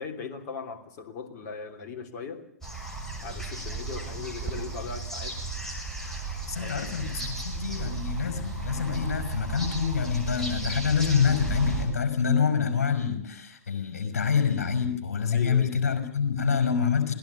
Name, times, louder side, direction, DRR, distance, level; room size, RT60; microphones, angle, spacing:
voice 1, 0.0-2.5 3.2-5.4 6.6-7.0 15.3-15.9, left 5 dB, 30° left, 3.4 m, -39 dB
sound 1, 2.6-11.9, right 3 dB, 5° left, 6.1 m, -34 dB
voice 2, 6.5-17.1, left 6 dB, 60° left, 5.3 m, -26 dB
27.0 x 19.0 x 7.0 m
figure-of-eight pair, 115°, 9 cm